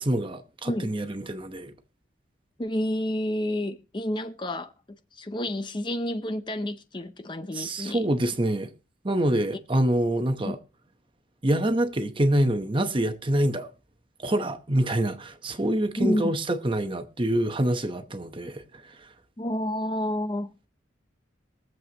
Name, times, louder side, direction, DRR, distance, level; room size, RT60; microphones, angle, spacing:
voice 1, 0.0-1.7 7.5-8.7 9.0-10.6 11.4-13.7 14.2-19.1, right 1 dB, 25° right, 0.9 m, -26 dB
voice 2, 2.6-4.7 5.1-8.1 10.4-10.6 16.0-16.3 19.4-20.7, left 1 dB, 25° left, 0.6 m, -29 dB
22.5 x 7.7 x 2.9 m
head